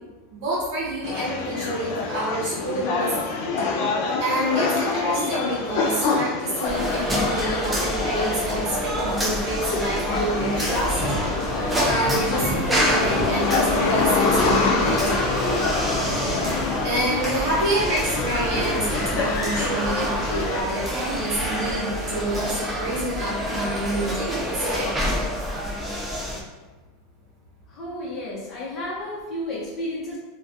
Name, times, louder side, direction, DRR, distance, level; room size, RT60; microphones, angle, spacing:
voice 1, 0.3-3.3 4.2-11.0 11.9-15.3 16.8-24.9, right 1 dB, 55° right, -6 dB, 0.8 m, -28 dB
sound 1, 1.0-20.6, left 3 dB, 55° left, 0.4 m, -26 dB
sound 2, 6.6-26.4, equal, 10° right, 0.4 m, -28 dB
sound 3, 10.8-22.0, right 1 dB, 35° right, 1.0 m, -35 dB
voice 2, 27.7-30.2, left 1 dB, 30° left, -6 dB, 0.8 m, -32 dB
2.3 x 2.2 x 2.6 m, 1.2 s
supercardioid pair, 150°, 0 cm